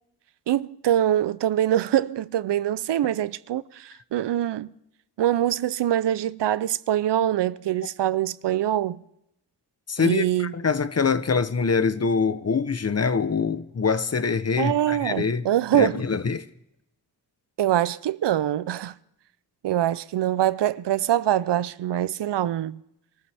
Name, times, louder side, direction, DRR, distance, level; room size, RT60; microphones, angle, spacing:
voice 1, 0.5-4.7 5.2-9.0 10.0-10.5 14.6-16.0 17.6-19.0 19.6-22.8, right 12 dB, 80° right, 0.6 m, -24 dB
voice 2, 9.9-15.5 15.7-16.5, left 5 dB, 40° left, 0.8 m, -24 dB
24.5 x 14.0 x 3.4 m
wide cardioid pair, 75°, 41 cm